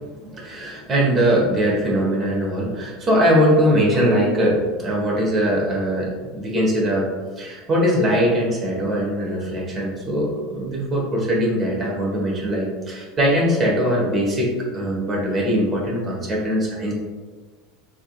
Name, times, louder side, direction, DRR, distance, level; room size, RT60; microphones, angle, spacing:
voice 1, 0.2-7.1 7.4-16.9, equal, 30° right, -3 dB, 1.4 m, -21 dB
4.3 x 3.8 x 2.4 m, 1.4 s
figure-of-eight pair, 75°, 0 cm